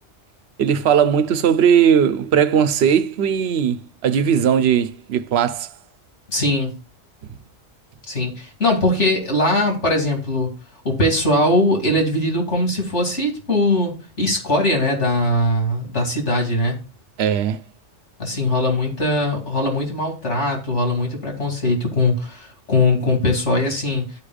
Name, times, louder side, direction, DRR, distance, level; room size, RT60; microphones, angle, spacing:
voice 1, 0.6-5.7 17.2-17.6, right 8 dB, 70° right, 0.9 m, -18 dB
voice 2, 6.3-6.7 8.1-10.5 10.8-16.8 18.2-24.0, left 1 dB, 80° left, 2.7 m, -20 dB
14.5 x 5.0 x 2.3 m
omnidirectional pair, 1.2 m